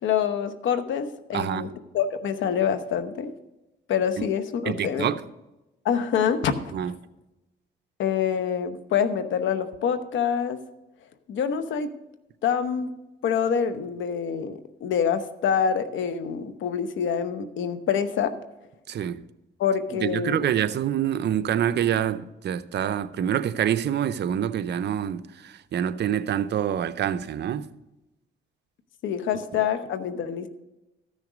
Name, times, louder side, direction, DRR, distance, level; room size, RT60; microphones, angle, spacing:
voice 1, 0.0-3.3 3.9-5.1 5.8-6.5 8.0-10.6 11.3-11.9 12.4-12.9 13.2-18.3 19.6-20.5 29.0-30.5, left 7 dB, 75° left, 1.0 m, -26 dB
voice 2, 1.3-1.7 4.7-5.2 6.7-6.9 18.9-19.2 19.9-27.7, right 9 dB, 60° right, 0.6 m, -26 dB
13.5 x 6.4 x 5.1 m
cardioid pair, 90°, 20 cm